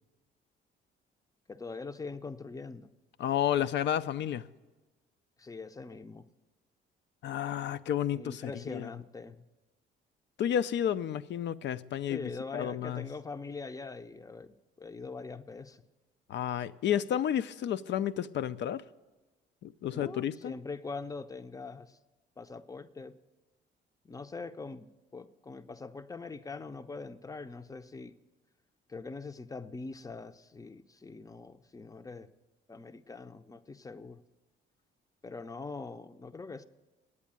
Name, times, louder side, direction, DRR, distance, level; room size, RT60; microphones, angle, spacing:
voice 1, 1.5-2.9 5.4-6.2 8.1-9.4 12.1-15.8 19.9-22.0 22.4-23.2 24.0-28.1 28.9-32.3 32.7-34.2 35.2-36.6, left 4 dB, 15° left, 0.6 m, -43 dB
voice 2, 3.2-4.5 7.2-8.9 10.4-12.2 12.5-13.0 16.3-18.8 19.6-20.5, left 10 dB, 65° left, 0.5 m, -31 dB
9.7 x 8.2 x 8.7 m
cardioid pair, 90°, 20 cm